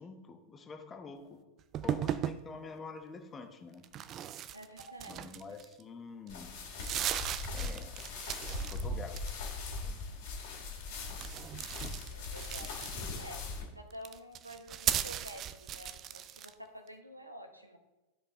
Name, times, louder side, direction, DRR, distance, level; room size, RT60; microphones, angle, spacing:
voice 1, 0.0-1.4 1.8-3.8 5.1-6.5 7.5-8.1 8.7-9.5 9.8-10.1, left 4 dB, 20° left, 5 dB, 1.0 m, -47 dB
sound 1, 1.7-2.4 3.8-5.8 6.3-6.4 6.7-8.8 9.1-9.6 11.1-13.2 13.9-16.5, right 11 dB, 30° right, 0.4 m, -37 dB
voice 2, 4.5-5.3 12.1-13.4 13.7-17.8, equal, 85° right, 6 dB, 1.0 m, -49 dB
sound 2, 6.3-13.6, left 3 dB, 50° left, 2.1 m, -40 dB
12.0 x 5.2 x 4.0 m, 1.1 s
figure-of-eight pair, 90°, 0 cm